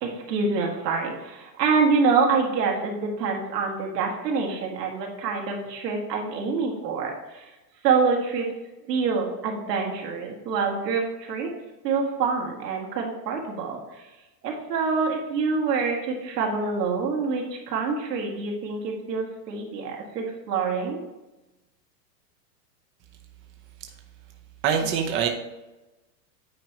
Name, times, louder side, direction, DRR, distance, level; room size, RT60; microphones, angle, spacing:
voice 1, 0.0-7.5 7.8-8.5 8.9-11.5 11.8-13.8 14.4-21.0, right 5 dB, 75° right, 0 dB, 2.1 m, -26 dB
voice 2, 24.6-25.3, right 7 dB, 25° right, 3 dB, 0.6 m, -23 dB
9.2 x 4.6 x 2.9 m, 1.0 s
hypercardioid pair, 125°, 49 cm